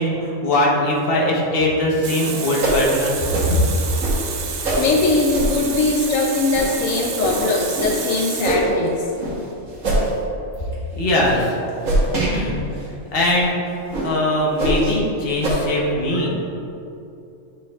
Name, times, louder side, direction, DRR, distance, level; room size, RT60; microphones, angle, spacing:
voice 1, 0.0-3.6 11.0-11.5 12.3-12.6 13.1-13.6 14.0-16.3, left 1 dB, 50° left, -3 dB, 1.2 m, -21 dB
Water tap faucet, 2.0-9.0, right 5 dB, 65° right, 0.9 m, -30 dB
sound 1, 2.6-2.8 3.3-3.5 4.0-4.2 4.6-4.8 5.3-5.5 6.0-6.1 6.5-6.7 7.2-7.4 7.7-8.0 8.4-8.7 9.2-9.4 9.8-10.1 10.5-10.7 11.2-11.4 11.8-12.3 12.8-12.9 13.3-13.4 13.9-14.1 14.6-14.9 15.4-15.5, right 1 dB, 85° right, 1.7 m, -22 dB
voice 2, 4.7-9.1 15.6-16.3, left 3 dB, 85° left, 0 dB, 1.0 m, -21 dB
9.5 x 5.3 x 2.4 m, 2.7 s
omnidirectional pair, 1.3 m